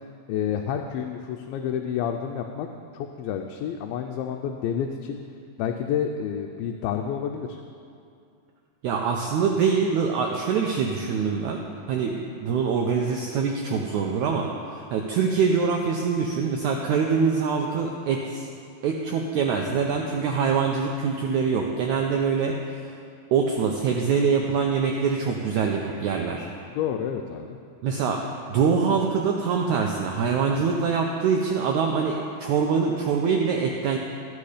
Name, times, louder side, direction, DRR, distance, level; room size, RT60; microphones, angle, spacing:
voice 1, 0.3-2.7 2.9-5.2 5.6-7.6 26.7-27.6, left 8 dB, 85° left, 4 dB, 2.4 m, -29 dB
voice 2, 8.8-11.6 11.9-18.5 18.8-22.9 23.3-26.5 27.8-28.2 28.5-34.0, right 5 dB, 85° right, 1 dB, 1.7 m, -24 dB
13.5 x 8.5 x 4.9 m, 2.4 s
omnidirectional pair, 4.1 m